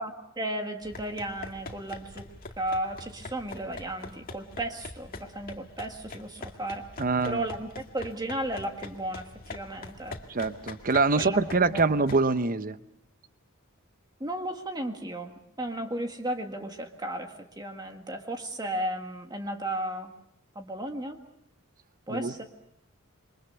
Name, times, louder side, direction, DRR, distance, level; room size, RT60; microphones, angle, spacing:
voice 1, 0.0-2.3 2.6-6.9 7.2-10.2 11.1-11.8 14.2-20.1 20.6-21.2 22.1-22.4, right 1 dB, 20° right, 5 dB, 1.7 m, -34 dB
sound 1, 0.8-12.3, left 2 dB, 40° left, 2.0 m, -44 dB
voice 2, 7.0-7.4 10.3-12.8 22.1-22.3, right 3 dB, 40° right, 12 dB, 0.9 m, -25 dB
28.0 x 24.0 x 6.9 m, 0.74 s
head